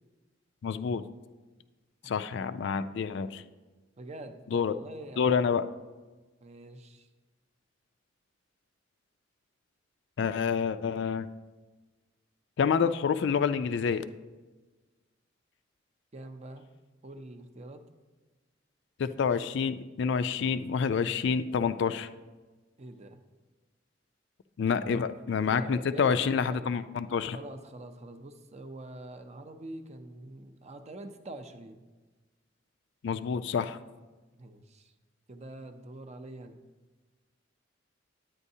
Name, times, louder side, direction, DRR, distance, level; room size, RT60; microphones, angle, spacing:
voice 1, 0.6-1.0 2.1-3.4 4.5-4.7 5.2-5.6 10.2-11.3 12.6-14.0 19.0-22.1 24.6-27.4 33.0-33.8, left 6 dB, 65° left, 11 dB, 0.3 m, -28 dB
voice 2, 4.0-5.3 6.4-7.1 16.1-16.7 17.0-17.8 22.8-23.2 24.8-25.0 25.4-26.7 27.3-31.8 34.4-34.9 35.3-36.6, right 2 dB, 35° right, 8 dB, 0.6 m, -45 dB
9.6 x 8.9 x 2.7 m, 1.2 s
head